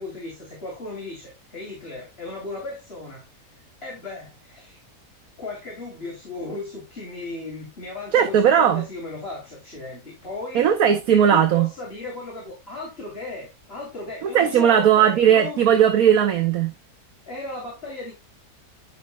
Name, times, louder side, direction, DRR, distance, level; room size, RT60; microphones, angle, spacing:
voice 1, 0.0-3.2 3.8-4.8 5.4-10.7 11.1-15.6 17.3-18.1, left 2 dB, 40° left, 3.4 m, -36 dB
voice 2, 8.1-8.9 10.5-11.7 14.2-16.7, right 9 dB, 70° right, 1.4 m, -17 dB
10.5 x 6.5 x 2.2 m
omnidirectional pair, 1.6 m